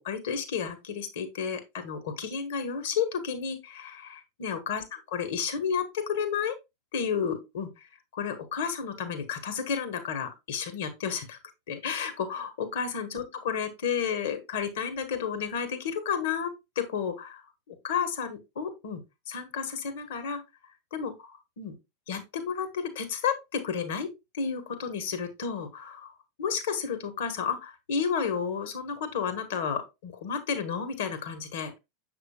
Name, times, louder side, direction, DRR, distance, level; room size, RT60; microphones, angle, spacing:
voice 1, 0.0-4.8 5.1-6.5 6.9-7.9 8.1-11.4 11.7-17.4 17.7-20.4 20.9-21.7 22.1-24.1 24.3-31.8, left 6 dB, 60° left, 1.5 m, -32 dB
7.0 x 6.0 x 2.3 m
figure-of-eight pair, 85°, 0 cm